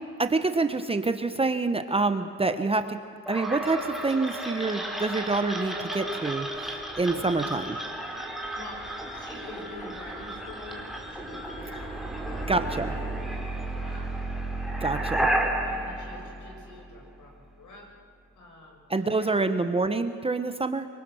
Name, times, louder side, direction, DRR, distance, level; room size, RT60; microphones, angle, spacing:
voice 1, 0.2-3.0 3.3-6.5 7.0-7.8 12.5-12.9 14.8-15.3 18.9-20.9, right 3 dB, 15° right, 8 dB, 0.9 m, -26 dB
sound 1, 3.3-17.1, right 1 dB, ahead, 3.1 m, -32 dB
voice 2, 8.5-8.8 9.1-14.1 14.8-15.2 15.6-17.9 18.4-19.4, left 2 dB, 65° left, 1 dB, 6.3 m, -47 dB
24.5 x 23.5 x 6.3 m, 2.1 s
cardioid pair, 110°, 33 cm